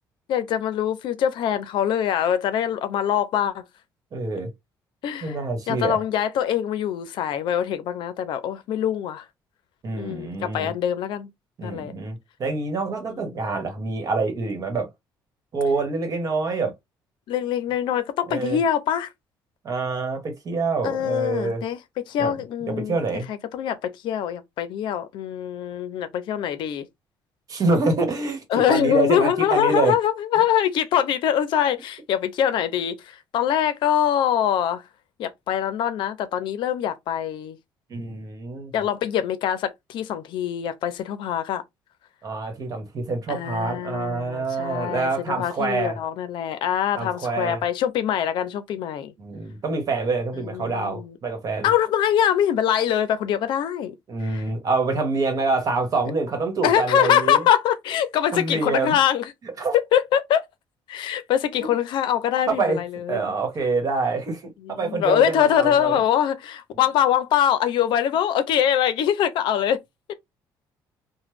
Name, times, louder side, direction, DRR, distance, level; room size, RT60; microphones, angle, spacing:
voice 1, 0.3-3.6 5.0-5.4 5.7-9.2 10.0-11.3 11.6-11.9 13.1-13.2 17.3-19.1 20.8-21.8 22.1-23.0 23.3-26.9 28.5-34.8 35.2-37.6 38.7-41.6 43.3-49.1 50.3-51.2 51.6-53.9 54.2-54.4 56.6-59.3 59.9-60.4 60.9-63.2 64.6-69.8, left 10 dB, 70° left, 0.5 m, -23 dB
voice 2, 4.1-4.5 5.2-6.0 9.8-10.7 11.6-14.9 15.5-16.8 18.3-18.6 19.6-21.6 22.2-22.3 22.6-23.3 27.5-29.9 37.9-38.7 42.2-46.0 46.9-47.6 49.2-51.7 54.1-57.5 58.3-59.0 59.4-59.8 61.6-61.7 62.5-62.8 63.1-66.0, right 3 dB, 45° right, 1.2 m, -26 dB
3.0 x 2.1 x 3.2 m
cardioid pair, 110°, 8 cm